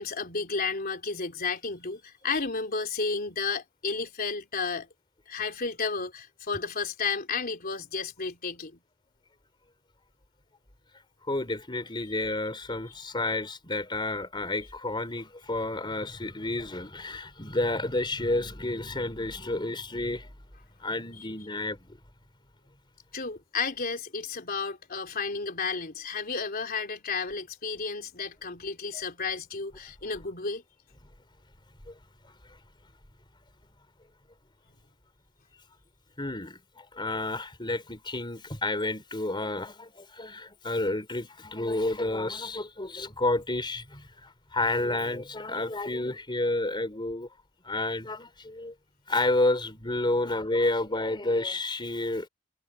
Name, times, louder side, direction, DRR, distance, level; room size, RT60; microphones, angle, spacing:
voice 1, 0.0-4.9 5.3-8.8 23.1-30.6, left 4 dB, 45° left, 3.5 m, -32 dB
voice 2, 11.3-20.3 20.8-22.0 28.9-29.0 36.2-47.3 47.7-48.7 49.1-52.3, left 2 dB, 25° left, 3.9 m, -30 dB
head